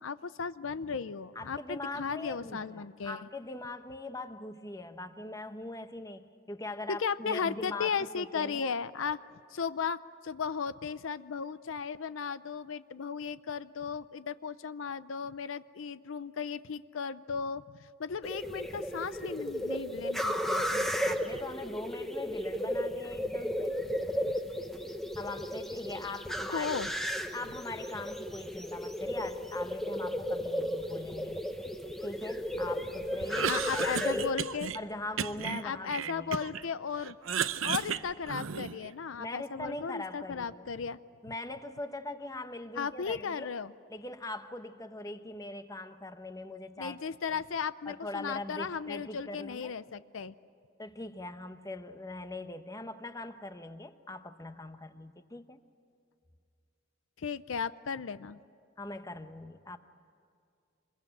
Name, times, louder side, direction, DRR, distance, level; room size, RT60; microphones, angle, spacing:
voice 1, 0.0-3.2 6.9-9.2 9.5-20.9 26.5-26.9 33.5-34.7 35.6-37.2 37.6-41.0 42.8-43.7 46.8-50.3 57.2-58.4, left 6 dB, 70° left, 14 dB, 0.5 m, -36 dB
voice 2, 1.3-8.8 21.0-23.8 25.2-26.7 27.3-31.4 32.0-34.4 34.7-36.3 39.2-40.7 41.2-43.5 43.9-47.0 47.3-47.4 47.9-49.8 50.8-55.6 58.8-59.8, left 2 dB, 15° left, 9 dB, 0.9 m, -41 dB
sound 1, 18.2-34.3, equal, ahead, 1.1 m, -34 dB
Cough, 33.2-34.8 35.2-36.7 37.0-38.9, right 7 dB, 75° right, 0.7 m, -34 dB
26.0 x 22.0 x 9.2 m, 2.4 s
head